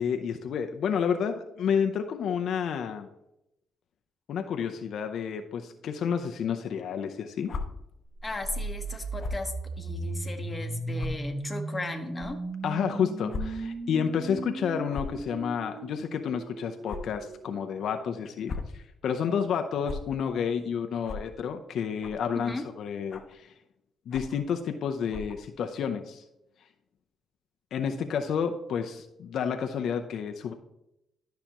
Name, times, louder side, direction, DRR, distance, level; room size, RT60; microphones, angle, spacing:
voice 1, 0.0-3.1 4.3-7.5 12.6-23.5 24.1-26.2 27.7-30.5, left 7 dB, 70° left, 6 dB, 0.6 m, -30 dB
sound 1, 7.4-7.6 9.2-9.4 10.2-10.3 11.0-11.1 12.1-12.3 13.3-13.4 13.8-13.9 14.9-15.2 16.9-17.0 18.2-18.7 19.8-20.0 21.0-21.2 22.0-22.3 23.1-23.4 24.1-24.4 25.1-25.4, left 4 dB, 50° left, 0.9 m, -36 dB
sound 2, 8.1-18.1, right 2 dB, 30° right, 0.9 m, -37 dB
voice 2, 8.2-12.4 22.4-22.7, left 2 dB, 20° left, 4 dB, 1.2 m, -36 dB
12.0 x 5.7 x 2.9 m, 0.84 s
cardioid pair, 90°, 0 cm